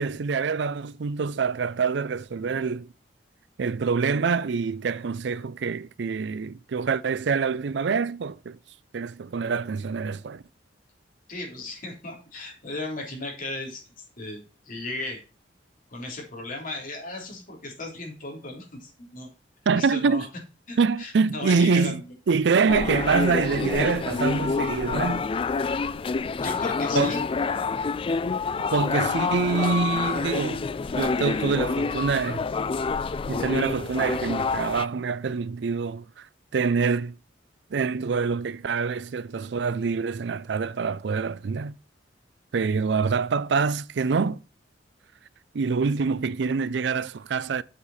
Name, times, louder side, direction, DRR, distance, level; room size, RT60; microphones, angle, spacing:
voice 1, 0.0-2.9 3.6-8.6 8.9-10.4 19.7-20.3 20.8-25.3 27.0-27.1 28.7-30.7 31.0-32.4 33.3-36.2 36.5-37.1 37.7-41.8 42.5-44.4 45.5-47.6, right 5 dB, 70° right, 0.4 m, -25 dB
voice 2, 11.3-13.8 14.2-15.2 15.9-19.3 19.7-20.2 20.7-22.0 26.4-27.3, left 2 dB, 50° left, 3.3 m, -36 dB
sound 1, 22.7-34.9, left 4 dB, 30° left, 0.3 m, -27 dB
7.5 x 6.7 x 4.2 m
head